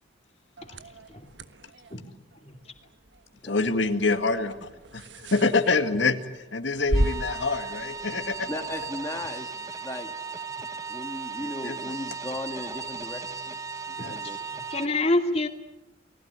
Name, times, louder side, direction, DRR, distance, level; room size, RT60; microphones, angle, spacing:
sound 1, 0.6-8.9, right 1 dB, 75° right, 1.4 m, -35 dB
voice 1, 3.4-8.5 11.4-11.9 13.9-14.2, left 3 dB, 85° left, 7 dB, 2.0 m, -26 dB
sound 2, 6.9-14.9, right 5 dB, 20° right, 1.2 m, -36 dB
voice 2, 8.5-10.1 10.9-13.6 14.1-14.4 14.8-14.9, left 1 dB, 15° left, 4 dB, 1.8 m, -37 dB
voice 3, 14.5-15.5, left 2 dB, 35° left, 5 dB, 2.7 m, -27 dB
29.0 x 20.0 x 9.7 m, 0.95 s
head